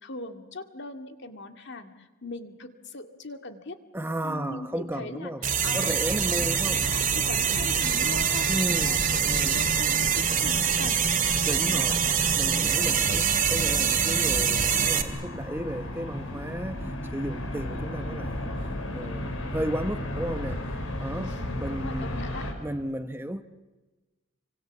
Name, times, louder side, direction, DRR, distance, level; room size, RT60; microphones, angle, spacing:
voice 1, 0.0-3.8 4.2-5.3 5.6-5.9 6.4-6.5 6.9-8.5 8.8-12.1 21.2-22.4, left 2 dB, 55° left, 2.2 m, -40 dB
voice 2, 3.9-5.5 5.7-6.9 8.5-9.6 11.5-12.0 12.4-18.5 18.9-20.6 21.0-23.4, right 1 dB, 10° right, 0.9 m, -34 dB
sound 1, 5.4-15.0, right 7 dB, 40° right, 2.3 m, -24 dB
sound 2, 6.1-22.5, left 1 dB, 80° left, 5.4 m, -36 dB
29.5 x 25.0 x 7.2 m
head